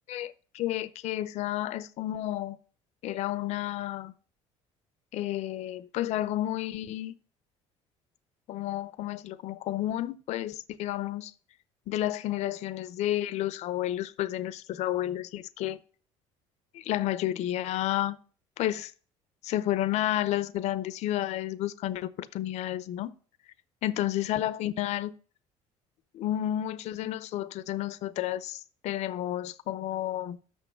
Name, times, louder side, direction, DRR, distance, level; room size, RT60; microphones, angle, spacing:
voice 1, 0.1-2.6 3.0-4.1 5.1-7.1 8.5-11.3 11.9-15.8 16.7-18.2 18.6-18.9 19.4-23.1 23.8-25.1 26.1-30.4, left 13 dB, 70° left, 0.6 m, -31 dB
6.3 x 6.2 x 6.7 m
cardioid pair, 105°, 12 cm